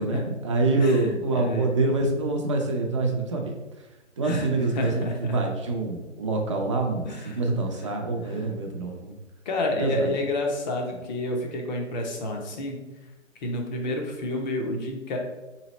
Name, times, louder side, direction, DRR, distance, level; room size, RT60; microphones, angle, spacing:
voice 1, 0.0-3.5 4.2-7.1 7.3-9.1 9.8-10.1, right 2 dB, 25° right, 2 dB, 0.4 m, -26 dB
voice 2, 0.8-1.7 4.2-5.4 7.0-7.4 7.7-8.0 8.2-8.5 9.5-12.8 13.4-15.2, left 1 dB, 35° left, 2 dB, 0.8 m, -30 dB
3.9 x 3.1 x 4.0 m, 1.1 s
hypercardioid pair, 140°, 38 cm